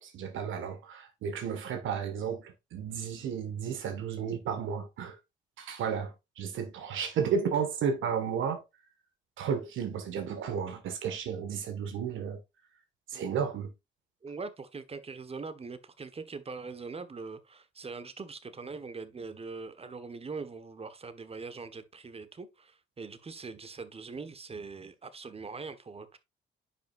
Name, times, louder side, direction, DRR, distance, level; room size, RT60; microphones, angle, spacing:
voice 1, 0.0-5.2 5.6-8.6 9.4-12.4 13.1-13.7, right 7 dB, 80° right, 1.7 m, -33 dB
voice 2, 14.2-26.2, right 4 dB, 30° right, 1.3 m, -42 dB
10.0 x 5.8 x 2.5 m
cardioid pair, 90°, 20 cm